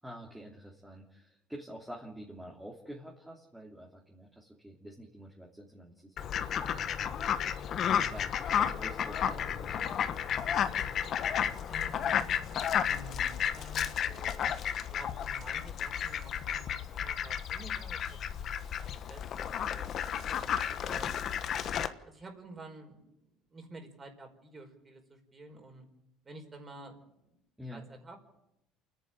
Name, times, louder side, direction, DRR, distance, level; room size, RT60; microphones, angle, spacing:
voice 1, 0.0-7.3 8.1-9.9 27.6-27.8, equal, 5° right, -2 dB, 3.1 m, -48 dB
Fowl, 6.2-21.9, left 9 dB, 45° left, 1.3 m, -32 dB
voice 2, 11.6-14.5 14.9-18.0 18.4-18.5 18.8-21.1 21.5-21.7 22.0-25.8 26.2-27.4 27.7-28.4, right 2 dB, 25° right, 5 dB, 4.8 m, -51 dB
28.0 x 10.5 x 9.0 m, 0.85 s
supercardioid pair, 110°, 0 cm